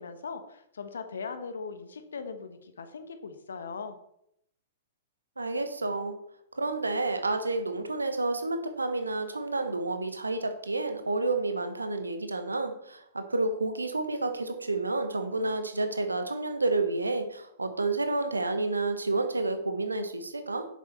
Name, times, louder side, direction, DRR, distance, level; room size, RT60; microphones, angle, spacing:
voice 1, 0.0-4.0, left 5 dB, 70° left, 8 dB, 1.3 m, -39 dB
voice 2, 5.4-6.2 6.5-20.7, right 2 dB, 85° right, 8 dB, 1.2 m, -30 dB
9.7 x 7.3 x 4.2 m, 0.75 s
figure-of-eight pair, 105°, 0 cm